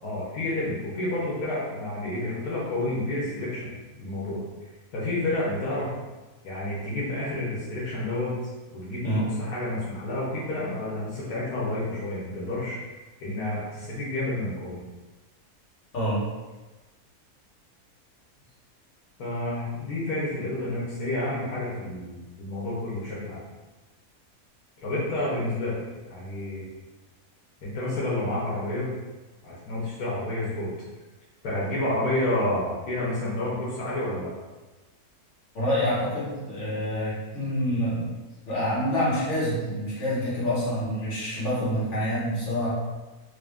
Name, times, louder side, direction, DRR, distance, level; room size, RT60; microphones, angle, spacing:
voice 1, 0.0-3.7 4.0-4.4 4.9-5.9 6.4-8.3 8.7-12.8 13.2-14.8 19.2-23.4 24.8-26.6 27.6-28.9 29.4-30.7 31.4-34.3, left 1 dB, 80° left, -7 dB, 1.5 m, -30 dB
voice 2, 15.9-16.2 35.5-38.1 38.5-42.7, equal, 50° left, -8 dB, 1.7 m, -27 dB
3.6 x 2.6 x 3.5 m, 1.2 s
omnidirectional pair, 1.6 m